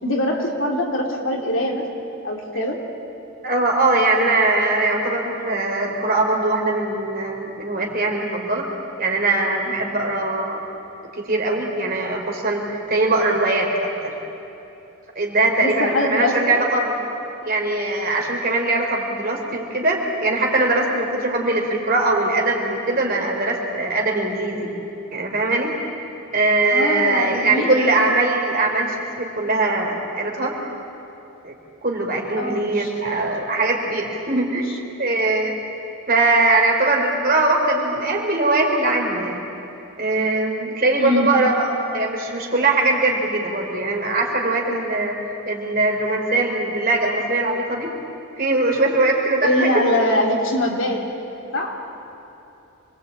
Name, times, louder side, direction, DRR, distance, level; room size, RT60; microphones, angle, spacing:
voice 1, 0.0-1.8 2.2-2.8 15.6-16.6 26.7-27.9 32.4-32.9 41.0-41.3 49.4-51.0 51.5-51.7, left 1 dB, 60° left, 1 dB, 3.0 m, -23 dB
voice 2, 3.4-10.6 11.1-13.7 14.0-14.1 15.2-16.9 17.4-24.7 25.1-30.6 31.4-31.5 31.8-34.7 35.0-35.5 36.1-39.4 40.0-45.2 45.5-47.9 48.4-49.8, right 2 dB, 40° right, 1 dB, 3.7 m, -21 dB
26.0 x 21.5 x 8.7 m, 2.9 s
head